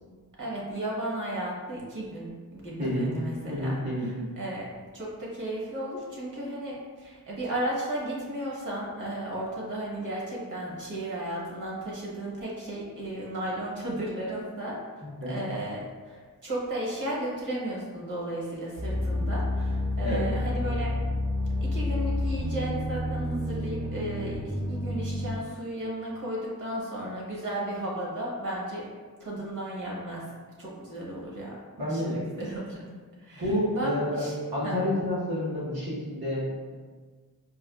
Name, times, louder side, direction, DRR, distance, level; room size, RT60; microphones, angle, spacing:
voice 1, 0.4-3.8 4.0-4.1 4.4-14.8 15.3-20.9 21.6-28.8 29.2-30.2 30.6-31.5 31.9-32.9 33.2-34.3 34.6-34.8, right 1 dB, 55° right, -4 dB, 1.0 m, -34 dB
voice 2, 2.8-3.1 3.5-4.1 15.0-15.4 20.0-20.3 31.8-32.2 33.3-34.3 34.5-36.7, left 1 dB, 85° right, -8 dB, 1.2 m, -29 dB
sound 1, 18.8-25.3, left 1 dB, 15° right, 0.4 m, -29 dB
4.2 x 2.2 x 2.3 m, 1.5 s
wide cardioid pair, 100°, 36 cm